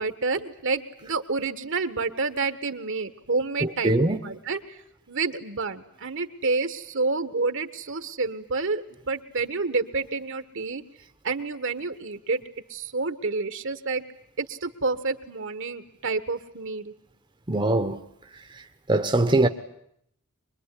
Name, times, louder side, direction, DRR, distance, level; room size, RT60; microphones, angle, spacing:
voice 1, 0.0-4.8 5.1-10.8 11.2-12.4 12.7-14.0 14.4-16.9, right 3 dB, 60° right, 1.4 m, -29 dB
voice 2, 3.6-4.2 17.5-18.0 18.9-19.5, right 2 dB, 20° right, 1.0 m, -22 dB
24.5 x 21.5 x 9.9 m
head